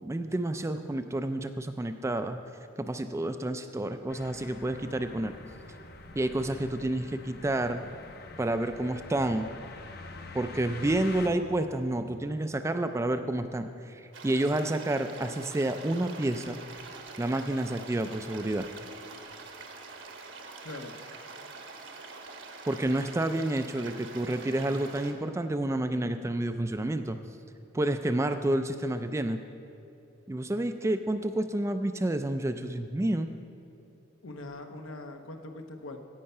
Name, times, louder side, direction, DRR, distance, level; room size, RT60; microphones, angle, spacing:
voice 1, 0.0-2.4 2.8-5.3 6.1-7.8 8.4-9.5 10.3-16.6 17.2-18.7 22.7-27.2 27.7-29.4 30.3-33.3, right 1 dB, 15° right, 8 dB, 0.3 m, -29 dB
sound 1, 4.1-11.3, left 3 dB, 50° left, 0.8 m, -46 dB
sound 2, 14.1-25.1, right 4 dB, 65° right, 1.1 m, -45 dB
voice 2, 20.6-21.0 34.2-36.0, left 2 dB, 85° left, 5 dB, 0.9 m, -42 dB
16.0 x 5.6 x 5.5 m, 2.8 s
head